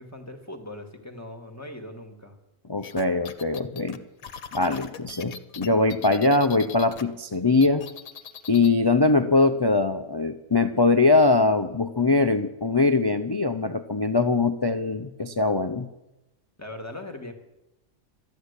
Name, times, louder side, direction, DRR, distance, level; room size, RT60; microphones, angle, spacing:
voice 1, 0.0-2.3 16.6-17.3, left 1 dB, 10° left, 3 dB, 1.7 m, -40 dB
voice 2, 2.7-4.0 4.5-7.9 8.5-15.9, left 3 dB, 40° left, 9 dB, 0.3 m, -22 dB
sound 1, 2.8-7.0 7.3-8.8, left 7 dB, 90° left, 1.3 m, -41 dB
13.0 x 10.5 x 8.2 m, 0.95 s
omnidirectional pair, 1.4 m